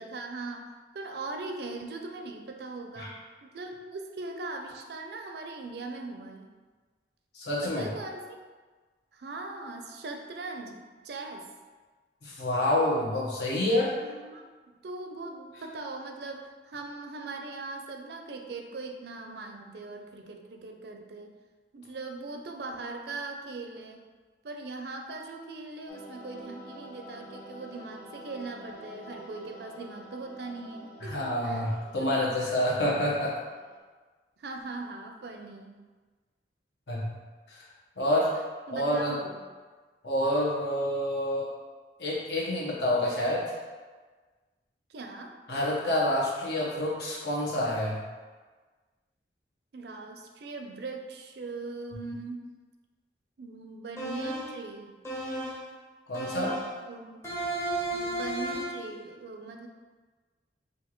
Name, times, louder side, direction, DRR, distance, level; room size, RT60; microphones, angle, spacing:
voice 1, 0.0-3.1 3.4-6.5 7.6-8.4 9.1-10.8 11.0-11.5 14.0-21.3 21.7-24.0 24.4-31.7 32.0-32.1 34.4-35.8 38.0-39.4 44.9-45.3 49.7-52.4 53.4-55.0 56.8-57.2 57.9-59.7, right 3 dB, 65° right, 3 dB, 0.5 m, -40 dB
voice 2, 7.3-7.8 12.2-13.9 31.0-33.3 36.9-37.1 37.5-37.6 38.0-38.3 38.7-39.2 40.0-41.5 42.0-43.5 45.5-48.0 56.1-56.5, left 1 dB, 75° left, -5 dB, 1.1 m, -28 dB
sound 1, 25.9-33.8, equal, 45° left, 1.3 m, -48 dB
sound 2, 54.0-54.6 55.0-55.7 56.1-56.8 57.2-58.9, right 1 dB, 15° left, 0.7 m, -33 dB
5.6 x 2.6 x 3.0 m, 1.4 s
head